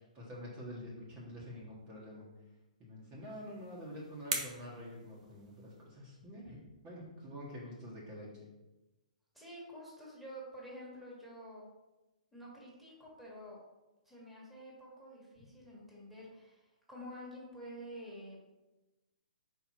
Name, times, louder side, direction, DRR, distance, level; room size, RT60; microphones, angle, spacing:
voice 1, 0.0-2.3 2.8-8.5, equal, 25° right, -5 dB, 1.4 m, -47 dB
sound 1, 3.2-5.9, right 4 dB, 60° right, 1.4 m, -43 dB
voice 2, 9.3-11.7 12.3-13.6 14.1-18.4, equal, ahead, -5 dB, 1.8 m, -49 dB
5.2 x 4.6 x 4.3 m, 1.0 s
hypercardioid pair, 145°, 4 cm